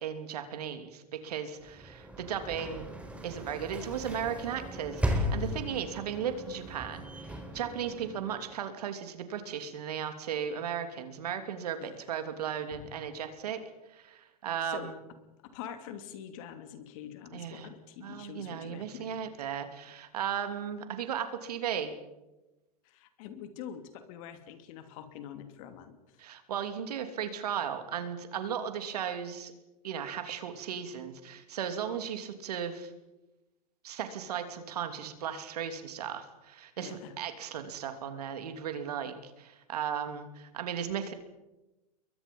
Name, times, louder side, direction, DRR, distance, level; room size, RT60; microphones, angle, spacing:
voice 1, 0.0-2.9 3.2-13.6 13.9-15.0 17.3-17.7 18.0-21.9 26.2-29.5 29.8-32.9 33.8-41.1, right 8 dB, 80° right, 8 dB, 3.0 m, -36 dB
Sliding door / Slam, 1.6-8.6, equal, 5° right, 3.8 m, -37 dB
voice 2, 15.4-19.3 22.8-26.0 36.8-37.1, left 9 dB, 60° left, 8 dB, 2.9 m, -45 dB
28.0 x 22.5 x 5.5 m, 1.0 s
hypercardioid pair, 115°, 20 cm